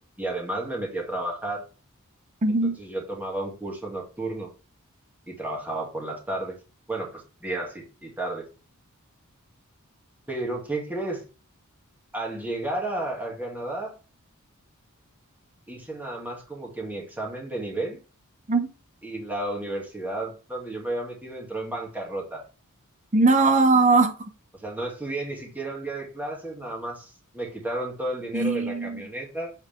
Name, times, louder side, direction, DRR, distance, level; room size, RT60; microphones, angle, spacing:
voice 1, 0.2-1.6 2.8-4.5 5.3-6.6 6.9-8.5 10.3-11.3 12.1-13.9 15.7-18.0 19.0-22.4 24.5-29.5, right 2 dB, 10° right, 2.3 m, -32 dB
voice 2, 2.4-2.8 18.5-18.7 23.1-24.1 28.3-29.0, right 3 dB, 35° right, 0.8 m, -20 dB
7.5 x 4.8 x 3.5 m
head